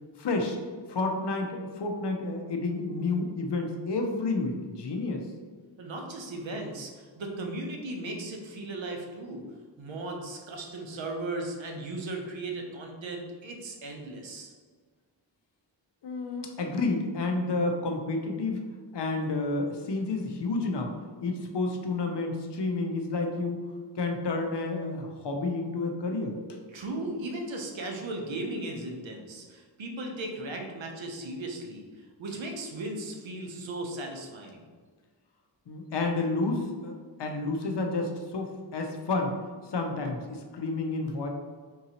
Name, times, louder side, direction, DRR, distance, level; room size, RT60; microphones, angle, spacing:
voice 1, 0.2-0.6 0.9-5.3 16.0-18.7 18.9-20.9 21.2-23.7 24.0-26.6 35.7-36.9 37.2-39.4 39.7-41.3, left 3 dB, 65° left, 3 dB, 0.6 m, -30 dB
voice 2, 5.8-9.4 9.8-14.5 26.7-34.6, right 2 dB, 75° right, 1 dB, 0.7 m, -37 dB
3.7 x 2.7 x 2.8 m, 1.5 s
wide cardioid pair, 110°, 46 cm